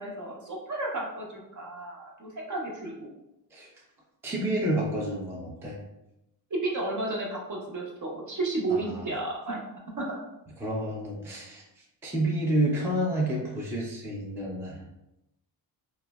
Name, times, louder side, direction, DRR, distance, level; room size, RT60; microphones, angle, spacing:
voice 1, 0.0-3.1 6.5-9.6 10.0-10.2, right 2 dB, 40° right, -1 dB, 0.8 m, -32 dB
voice 2, 4.2-5.8 8.7-9.1 10.6-14.8, right 1 dB, 5° right, -3 dB, 0.5 m, -29 dB
3.0 x 2.0 x 2.3 m, 0.89 s
supercardioid pair, 70°, 48 cm